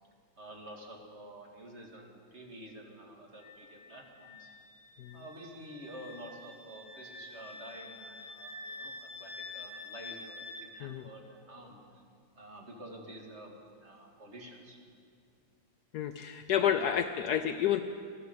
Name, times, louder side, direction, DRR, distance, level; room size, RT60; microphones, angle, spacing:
voice 1, 0.4-4.5 5.1-11.8 12.3-14.8 16.6-16.7, right 1 dB, 40° right, 0 dB, 2.0 m, -49 dB
Wind instrument woodwind instrument, 3.4-10.7, left 2 dB, 30° left, 1.5 m, -47 dB
voice 2, 15.9-17.8, left 9 dB, 70° left, 8 dB, 1.0 m, -30 dB
14.0 x 11.5 x 7.6 m, 2.2 s
omnidirectional pair, 2.0 m